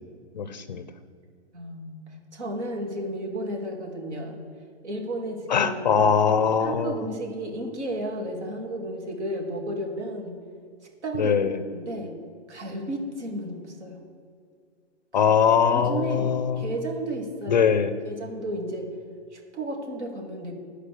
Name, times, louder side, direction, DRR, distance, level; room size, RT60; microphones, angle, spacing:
voice 1, 0.3-0.8 5.5-7.0 11.1-11.6 15.1-16.7 17.5-17.9, left 7 dB, 40° left, 11 dB, 0.4 m, -22 dB
voice 2, 1.5-4.4 4.8-6.0 6.6-10.3 11.0-11.4 11.7-12.1 12.5-14.0 15.1-15.3 15.7-17.8 18.0-18.9 19.3-20.5, right 1 dB, 75° right, 0 dB, 2.6 m, -33 dB
12.5 x 4.9 x 6.7 m, 2.2 s
hypercardioid pair, 160°, 35 cm